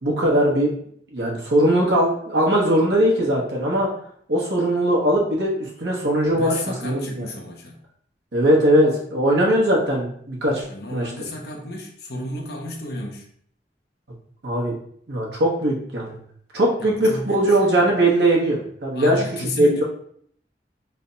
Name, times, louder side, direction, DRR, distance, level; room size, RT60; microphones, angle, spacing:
voice 1, 0.0-0.7 1.1-3.9 4.3-7.3 8.3-10.6 10.9-11.1 14.4-14.7 15.1-16.2 16.5-19.2 19.6-19.8, right 1 dB, 75° right, -3 dB, 1.0 m, -20 dB
voice 2, 6.3-7.8 10.7-13.3 16.8-17.8 18.9-19.8, left 1 dB, 60° left, 1 dB, 0.7 m, -32 dB
3.3 x 2.1 x 3.8 m, 0.64 s
head